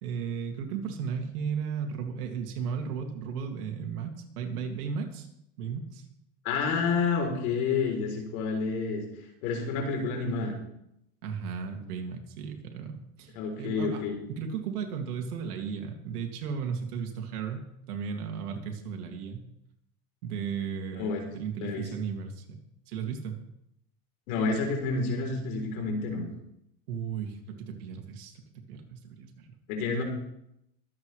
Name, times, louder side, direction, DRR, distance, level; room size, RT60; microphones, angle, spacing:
voice 1, 0.0-5.3 5.6-6.0 11.2-14.0 14.3-19.4 20.2-22.6 22.9-23.4 26.9-28.4 28.7-29.5, right 6 dB, 85° right, 4 dB, 2.6 m, -35 dB
voice 2, 6.4-9.0 9.4-10.5 13.3-14.2 20.9-21.2 21.6-21.9 24.3-26.3 29.7-30.0, left 4 dB, 70° left, 2 dB, 3.8 m, -29 dB
23.0 x 8.1 x 3.3 m, 0.80 s
supercardioid pair, 120°, 44 cm